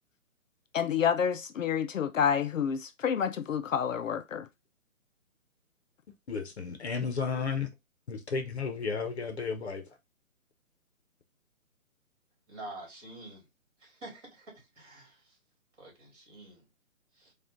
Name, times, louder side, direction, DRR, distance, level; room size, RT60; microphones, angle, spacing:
voice 1, 0.7-4.5, left 8 dB, 65° left, 0.5 m, -29 dB
voice 2, 6.3-7.7 8.1-9.8, left 5 dB, 50° left, 0.8 m, -33 dB
voice 3, 12.5-13.5 13.8-15.4 15.8-16.6 17.2-17.3, right 2 dB, 25° right, 2.1 m, -47 dB
4.8 x 2.4 x 3.7 m
hypercardioid pair, 160°, 43 cm